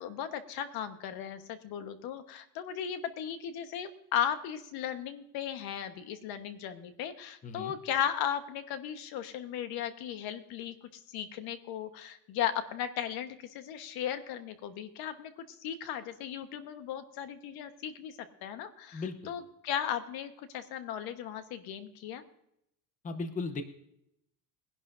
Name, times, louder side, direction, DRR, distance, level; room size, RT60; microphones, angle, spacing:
voice 1, 0.0-10.7 11.1-18.1 18.4-22.2, left 9 dB, 70° left, 9 dB, 1.3 m, -36 dB
voice 2, 7.4-7.7 18.9-19.3 23.0-23.6, left 4 dB, 20° left, 8 dB, 0.8 m, -36 dB
21.5 x 11.0 x 2.6 m, 0.77 s
cardioid pair, 155°, 38 cm